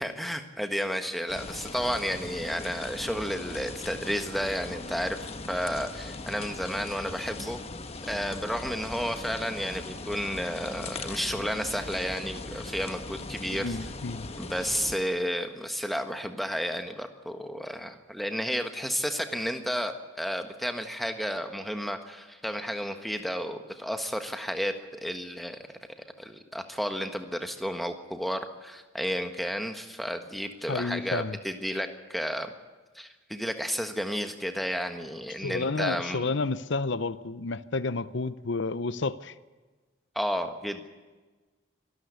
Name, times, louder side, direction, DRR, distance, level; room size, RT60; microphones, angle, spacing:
voice 1, 0.0-5.2 5.5-7.6 8.0-13.8 14.4-25.6 26.2-32.5 32.9-36.3 40.1-40.9, equal, ahead, 6 dB, 1.5 m, -32 dB
sound 1, 1.3-15.0, left 3 dB, 30° left, 1.2 m, -39 dB
voice 2, 13.5-14.3 30.7-31.4 35.4-39.3, left 3 dB, 65° left, 15 dB, 0.7 m, -30 dB
25.0 x 13.5 x 9.6 m, 1.3 s
head